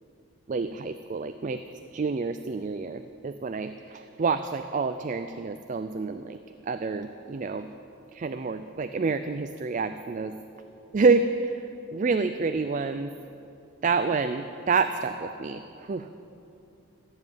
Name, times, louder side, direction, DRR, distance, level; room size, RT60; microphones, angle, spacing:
voice 1, 0.5-1.6 1.9-6.4 6.7-7.7 8.1-10.4 10.9-11.5 11.9-13.1 13.8-15.6 15.9-16.1, right 4 dB, 35° right, 9 dB, 0.3 m, -28 dB
14.0 x 7.4 x 9.3 m, 2.8 s
head